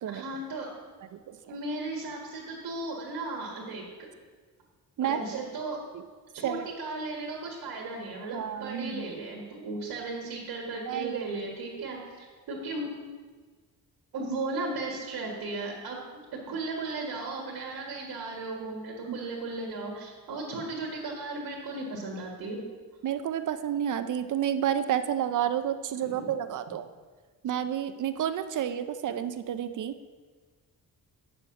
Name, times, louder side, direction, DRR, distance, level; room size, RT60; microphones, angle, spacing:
voice 1, 0.1-0.7 1.5-4.1 5.0-5.8 6.3-12.9 14.1-16.0 16.3-22.6 26.0-26.3, right 2 dB, 80° right, -2 dB, 1.7 m, -36 dB
voice 2, 5.0-5.4 5.9-6.0 6.4-6.7 8.3-9.0 10.9-11.3 11.8-11.9 19.1-19.2 23.0-26.9 27.4-29.9, right 9 dB, 55° right, 11 dB, 0.5 m, -30 dB
8.1 x 7.1 x 5.8 m, 1.5 s
wide cardioid pair, 160°, 37 cm